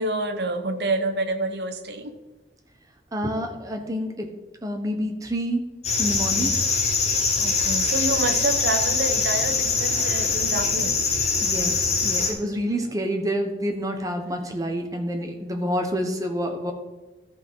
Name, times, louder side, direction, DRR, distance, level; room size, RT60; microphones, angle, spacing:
voice 1, 0.0-2.2 7.4-11.0, right 2 dB, 65° right, 7 dB, 1.0 m, -28 dB
voice 2, 3.1-4.3 4.6-5.6 6.0-6.5 11.4-11.8 12.0-16.7, equal, 20° right, 3 dB, 1.2 m, -28 dB
sound 1, 5.8-12.3, left 4 dB, 40° left, 1.7 m, -23 dB
13.5 x 5.8 x 4.8 m, 1.1 s
head